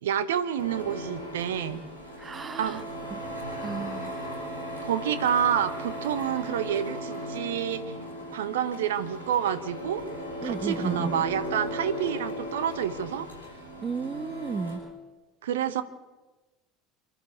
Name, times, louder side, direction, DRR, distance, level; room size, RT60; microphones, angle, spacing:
voice 1, 0.0-1.8 2.6-2.8 4.8-8.0 8.3-10.0 10.4-13.3 15.4-15.8, right 9 dB, 70° right, 14 dB, 1.0 m, -28 dB
Printer, 0.5-14.8, equal, 90° right, 5.5 m, -37 dB
voice 2, 2.2-2.8 3.6-4.1 10.4-11.2 13.8-14.8, right 4 dB, 25° right, 17 dB, 0.9 m, -33 dB
28.0 x 11.5 x 8.5 m, 1.2 s
figure-of-eight pair, 65°, 0 cm